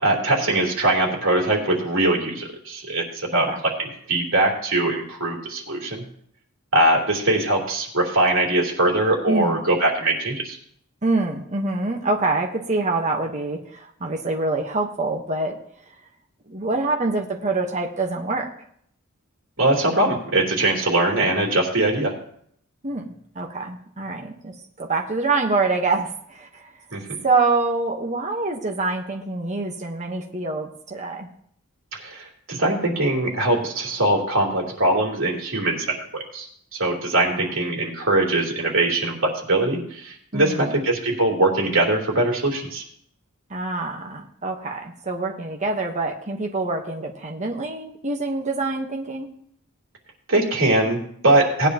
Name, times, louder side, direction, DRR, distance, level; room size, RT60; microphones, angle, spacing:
voice 1, 0.0-6.0 6.7-10.6 19.6-22.1 26.9-27.0 31.9-42.8 50.3-51.7, right 2 dB, 70° right, -2 dB, 3.4 m, -22 dB
voice 2, 9.3-9.6 11.0-15.6 16.5-18.5 22.8-24.5 24.8-26.7 27.2-31.3 37.3-37.5 40.3-40.8 43.5-49.3, right 3 dB, 35° right, 2 dB, 1.2 m, -25 dB
18.5 x 9.7 x 3.0 m, 0.67 s
head